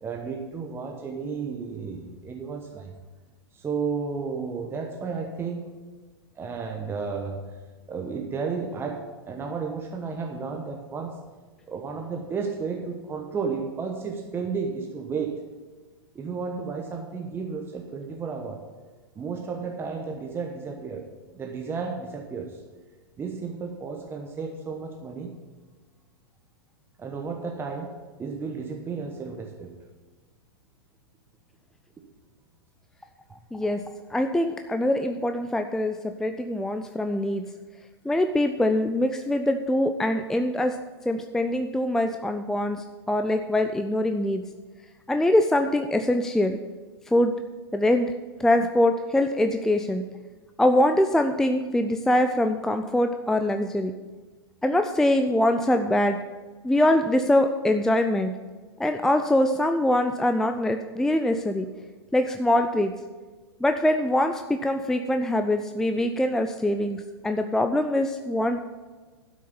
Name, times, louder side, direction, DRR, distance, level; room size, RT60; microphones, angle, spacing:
voice 1, 0.0-2.9 3.5-5.7 6.3-7.4 7.9-11.2 11.7-15.5 16.1-18.6 19.1-21.1 21.3-22.6 23.2-25.3 27.0-29.7, right 5 dB, 15° right, 2 dB, 1.1 m, -33 dB
voice 2, 33.5-33.8 34.1-37.4 38.0-40.8 41.1-44.4 45.1-46.6 47.1-47.3 47.7-48.1 48.4-50.0 50.6-53.9 54.6-56.2 56.6-58.3 58.8-61.7 62.1-62.9 63.6-68.6, left 1 dB, 5° left, 7 dB, 0.4 m, -23 dB
12.0 x 6.5 x 6.9 m, 1.3 s
figure-of-eight pair, 105°, 13 cm